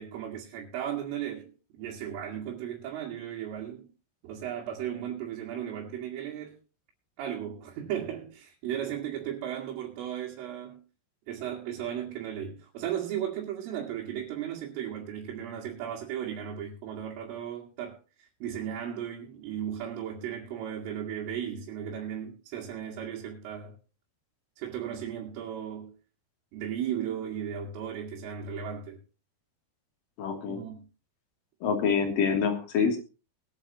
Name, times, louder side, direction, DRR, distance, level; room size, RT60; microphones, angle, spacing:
voice 1, 0.0-1.5 1.8-3.9 4.2-6.6 7.2-10.8 11.3-23.8 24.6-26.0 26.5-29.0 30.5-30.9, right 9 dB, 85° right, 4.8 m, -36 dB
voice 2, 30.2-30.6 31.6-33.0, left 6 dB, 50° left, 4.2 m, -26 dB
22.5 x 9.1 x 3.0 m
omnidirectional pair, 5.6 m